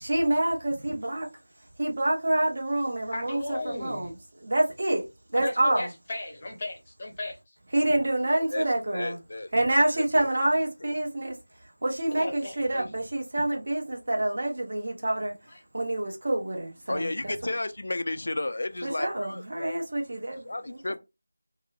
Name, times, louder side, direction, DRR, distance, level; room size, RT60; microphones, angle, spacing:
voice 1, 0.0-1.3 1.8-4.1 4.4-5.0 5.3-5.9 7.7-9.2 9.5-11.3 11.8-15.3 15.7-17.5 18.8-21.0, right 1 dB, 50° right, 0.9 m, -27 dB
voice 2, 3.1-4.1 5.3-7.5 12.1-12.9 15.5-15.6, left 2 dB, 30° left, 0.7 m, -35 dB
voice 3, 8.3-9.5 9.9-10.5 16.9-19.8 20.4-21.0, left 2 dB, 55° left, 0.4 m, -33 dB
2.9 x 2.0 x 2.3 m
figure-of-eight pair, 170°, 0 cm